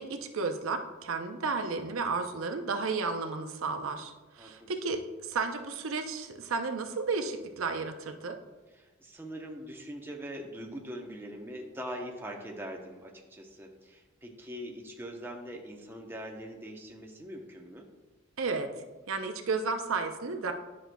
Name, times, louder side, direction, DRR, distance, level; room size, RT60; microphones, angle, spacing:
voice 1, 0.0-8.4 18.4-18.7 19.1-20.5, right 4 dB, 85° right, 6 dB, 0.6 m, -33 dB
voice 2, 4.4-4.9 8.7-17.9, equal, 10° right, 0 dB, 0.7 m, -42 dB
10.5 x 6.1 x 2.2 m, 1.2 s
head